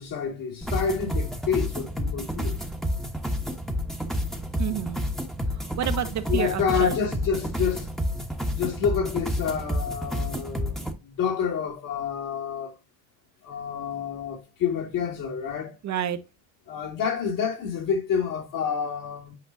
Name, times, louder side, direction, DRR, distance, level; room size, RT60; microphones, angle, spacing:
voice 1, 0.0-2.6 6.3-7.9 8.5-12.7 13.4-15.7 16.7-19.3, left 7 dB, 60° left, 2.7 m, -28 dB
sound 1, 0.6-10.9, equal, ahead, 1.1 m, -30 dB
voice 2, 4.6-5.0 5.6-6.9 15.8-16.2, right 10 dB, 50° right, 0.9 m, -29 dB
8.5 x 4.9 x 2.6 m
cardioid pair, 115°, 36 cm